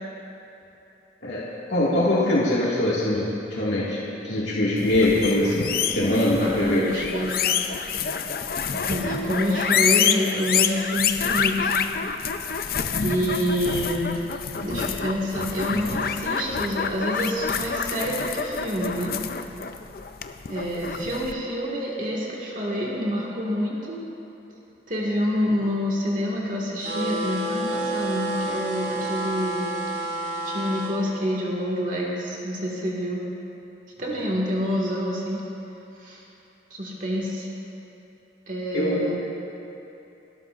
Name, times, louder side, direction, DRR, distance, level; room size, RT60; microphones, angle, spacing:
voice 1, 1.2-4.0 4.2-6.8 38.7-39.1, left 1 dB, 75° left, -7 dB, 2.1 m, -23 dB
sound 1, 4.8-21.3, left 7 dB, 50° left, 0.5 m, -27 dB
voice 2, 6.4-7.7 8.7-11.7 12.1-12.2 13.0-19.2 20.5-24.0 24.9-30.1 30.4-33.2 34.0-35.4 36.0-36.2 36.7-37.5 38.5-39.2, equal, 45° right, -4 dB, 1.9 m, -27 dB
sound 2, 26.8-30.9, right 1 dB, 75° right, 3.1 m, -29 dB
29.5 x 13.0 x 2.5 m, 2.9 s
head